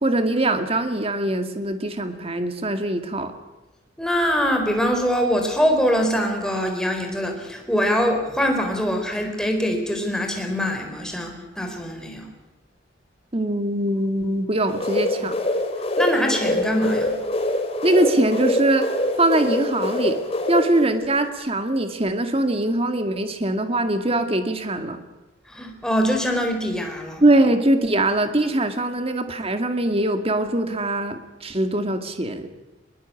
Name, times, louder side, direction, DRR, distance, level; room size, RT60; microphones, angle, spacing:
voice 1, 0.0-3.3 13.3-15.4 17.8-18.9 19.2-20.2 20.5-25.0 27.2-32.5, right 1 dB, 30° right, 7 dB, 2.1 m, -22 dB
voice 2, 4.0-12.3 16.0-17.1 25.5-27.2, equal, 5° left, 3 dB, 4.2 m, -23 dB
sound 1, 14.7-21.3, left 1 dB, 35° left, 2.7 m, -25 dB
21.5 x 20.5 x 8.5 m, 1.1 s
head